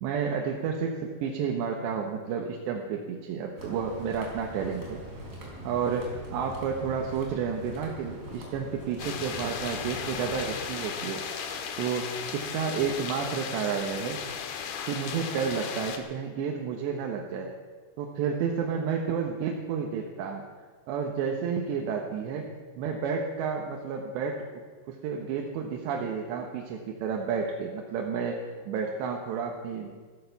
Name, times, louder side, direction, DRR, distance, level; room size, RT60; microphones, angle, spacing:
voice 1, 0.0-5.0 5.6-11.2 11.8-14.2 14.9-17.5 18.0-20.4 20.9-22.5 22.7-24.4 24.9-28.4 28.7-29.9, right 6 dB, 80° right, 1 dB, 3.3 m, -31 dB
sound 1, 3.6-10.7, equal, 20° right, 4.4 m, -42 dB
sound 2, 9.0-16.0, left 7 dB, 65° left, 2.8 m, -36 dB
16.0 x 15.0 x 5.9 m, 1.5 s
omnidirectional pair, 5.1 m